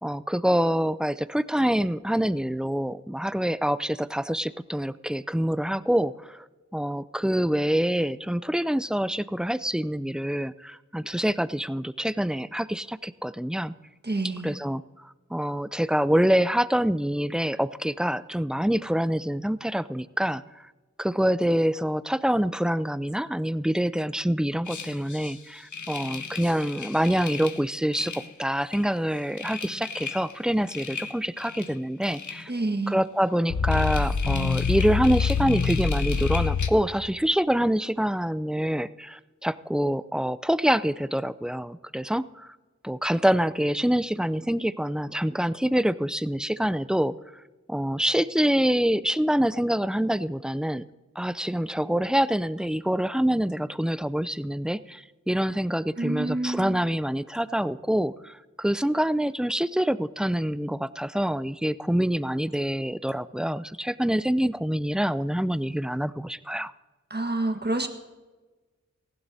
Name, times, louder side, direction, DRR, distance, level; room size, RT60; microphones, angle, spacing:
voice 1, 0.0-6.4 6.7-13.7 14.4-20.4 21.0-28.1 28.4-32.5 32.9-42.5 42.8-47.1 47.7-50.8 51.2-66.7, equal, 5° right, 16 dB, 0.4 m, -26 dB
voice 2, 14.0-14.6 32.5-33.0 56.0-56.8 67.1-67.9, right 2 dB, 35° right, 5 dB, 1.4 m, -28 dB
sound 1, 24.7-25.3 25.7-27.6 27.9-28.3 28.7-28.9 29.2-30.3 30.7-31.7 32.0-32.4 33.5-36.7, left 5 dB, 90° left, 0.8 m, -28 dB
18.5 x 15.0 x 2.7 m, 1.2 s
wide cardioid pair, 45°, 29 cm